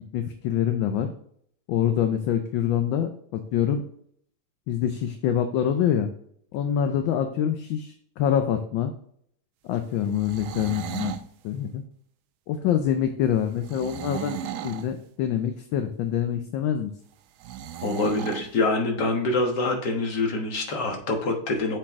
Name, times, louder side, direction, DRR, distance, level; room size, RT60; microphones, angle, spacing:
voice 1, 0.1-1.1 1.7-3.8 4.7-6.1 6.5-8.9 9.7-11.1 11.4-11.8 12.5-16.9, left 9 dB, 75° left, 7 dB, 1.3 m, -25 dB
sound 1, 10.0-11.3 13.6-14.9 17.4-18.5, right 11 dB, 80° right, 1.4 m, -35 dB
voice 2, 17.8-21.8, left 2 dB, 55° left, 2 dB, 1.9 m, -25 dB
7.4 x 4.5 x 3.6 m, 0.64 s
omnidirectional pair, 2.3 m